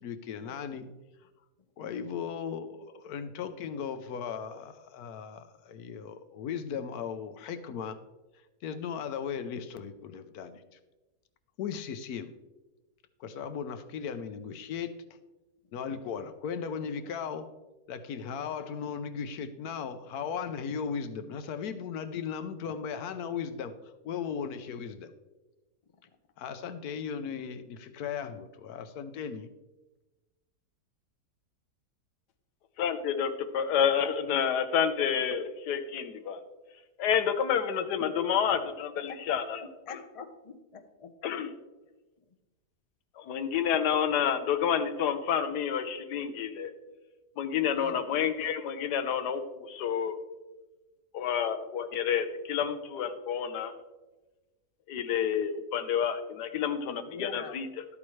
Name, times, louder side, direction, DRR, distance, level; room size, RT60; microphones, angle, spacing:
voice 1, 0.0-0.9 1.8-8.0 8.6-10.6 11.6-12.3 13.2-15.0 15.7-17.5 17.9-23.7 24.0-25.1 26.4-29.5, left 7 dB, 70° left, 11 dB, 1.2 m, -37 dB
voice 2, 32.8-36.4 37.0-40.0 41.2-41.5 43.2-46.7 47.4-50.2 51.1-52.6 53.0-53.7 54.9-57.9, left 8 dB, 90° left, 10 dB, 1.4 m, -29 dB
voice 3, 39.6-41.1 47.8-48.0 57.1-57.5, left 5 dB, 40° left, 6 dB, 0.4 m, -43 dB
12.5 x 8.6 x 3.2 m, 1.1 s
omnidirectional pair, 1.7 m